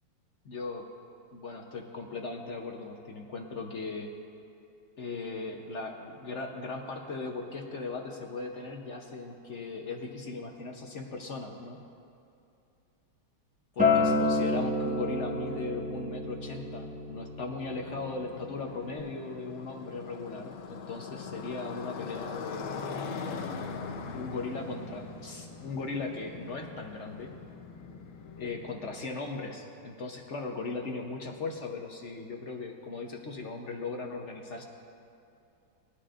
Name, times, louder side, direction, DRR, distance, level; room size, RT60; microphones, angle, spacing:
voice 1, 0.5-0.8 1.3-4.1 5.0-11.8 13.7-22.9 24.1-27.3 28.4-34.6, left 3 dB, 55° left, 2 dB, 0.8 m, -38 dB
Acoustic guitar, 13.8-19.0, left 3 dB, 5° right, 0.6 m, -30 dB
Motorcycle, 17.6-29.1, left 5 dB, 75° left, 1.5 m, -41 dB
20.5 x 11.5 x 2.5 m, 2.7 s
omnidirectional pair, 2.2 m